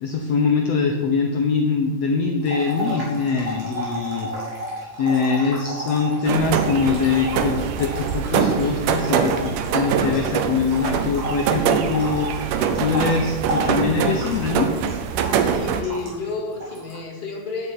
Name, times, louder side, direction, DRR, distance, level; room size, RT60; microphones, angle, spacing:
voice 1, 0.0-4.3 5.0-14.7, left 4 dB, 65° left, 3 dB, 1.8 m, -23 dB
sound 1, 2.4-10.3 10.6-16.3 16.6-17.0, right 1 dB, 45° right, 4.2 m, -32 dB
sound 2, 6.2-15.8, right 7 dB, 80° right, 2.5 m, -24 dB
voice 2, 15.5-17.7, left 3 dB, 20° left, -1 dB, 2.0 m, -30 dB
9.5 x 8.2 x 8.9 m, 1.2 s
omnidirectional pair, 3.8 m